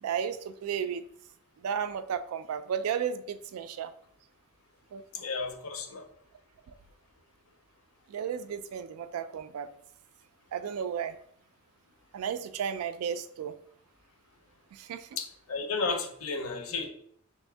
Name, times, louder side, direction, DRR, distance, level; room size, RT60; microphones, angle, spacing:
voice 1, 0.0-1.0 1.6-3.9 4.9-5.0 8.1-9.7 10.5-11.2 12.1-13.5 14.7-15.2, right 7 dB, 80° right, 15 dB, 0.3 m, -33 dB
voice 2, 5.1-6.1 15.2-16.9, left 4 dB, 70° left, 5 dB, 0.6 m, -33 dB
3.4 x 2.6 x 3.3 m, 0.66 s
head